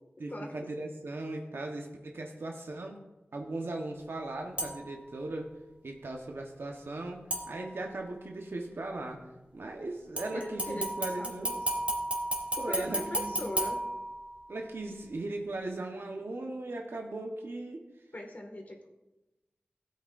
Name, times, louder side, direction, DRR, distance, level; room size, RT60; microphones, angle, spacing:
voice 1, 0.2-3.0 3.3-5.5 5.8-9.2 9.5-11.6 12.6-13.5 14.5-17.8, right 2 dB, 80° right, 1 dB, 1.1 m, -38 dB
sound 1, 4.6-5.0 7.3-8.0 10.2-14.5 15.0-15.1, right 1 dB, 35° right, 2.2 m, -34 dB
voice 2, 10.3-11.3 12.6-13.8 18.1-18.9, left 1 dB, 45° left, 1 dB, 1.9 m, -40 dB
17.0 x 8.6 x 2.6 m, 1.0 s
wide cardioid pair, 80°, 4 cm